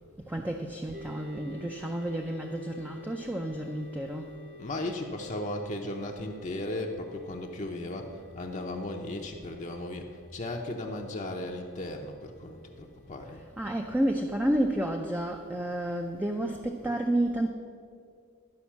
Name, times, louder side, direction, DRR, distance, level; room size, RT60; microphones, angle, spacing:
voice 1, 0.3-4.4 13.3-17.5, right 1 dB, 10° right, 2 dB, 0.4 m, -30 dB
sound 1, 0.9-14.8, left 1 dB, 45° right, 0.8 m, -51 dB
voice 2, 4.6-13.4, left 1 dB, 35° left, 2 dB, 0.6 m, -36 dB
11.5 x 5.3 x 7.1 m, 2.3 s
head